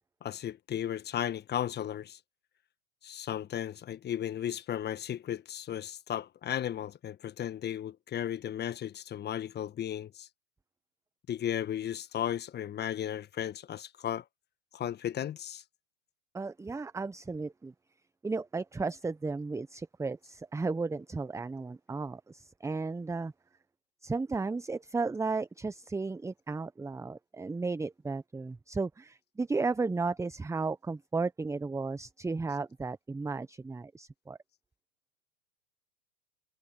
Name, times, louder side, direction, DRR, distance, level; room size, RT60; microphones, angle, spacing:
voice 1, 0.2-2.2 3.0-10.3 11.3-14.2 14.7-15.6, left 10 dB, 25° left, 1.5 m, -35 dB
voice 2, 16.3-17.7 18.2-23.3 24.0-34.4, right 3 dB, 5° right, 1.1 m, -34 dB
hypercardioid pair, 95°, 41 cm